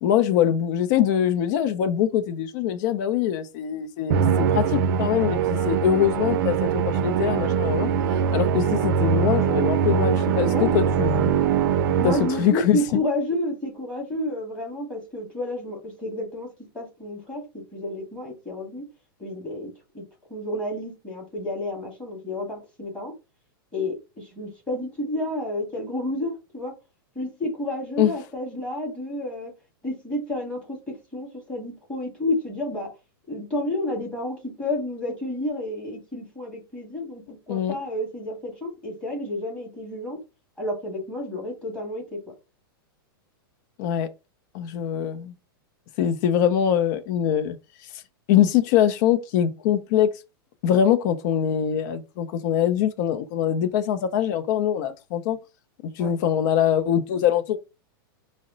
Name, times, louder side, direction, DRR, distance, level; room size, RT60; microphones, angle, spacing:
voice 1, 0.0-7.9 8.3-11.4 12.0-13.0 28.0-28.1 37.5-37.8 43.8-44.1 44.5-45.3 46.0-47.6 48.3-50.1 50.6-55.4 56.0-57.6, left 9 dB, 50° left, 0.6 m, -23 dB
Musical instrument, 4.1-12.6, right 7 dB, 60° right, 0.5 m, -22 dB
voice 2, 10.4-10.7 12.0-16.5 16.7-18.8 19.2-20.0 20.3-23.1 23.7-26.7 27.1-29.5 29.8-32.9 33.3-40.2 40.6-42.2 56.0-56.2, left 1 dB, 10° left, 2.3 m, -30 dB
4.7 x 2.1 x 3.9 m
supercardioid pair, 145°, 12 cm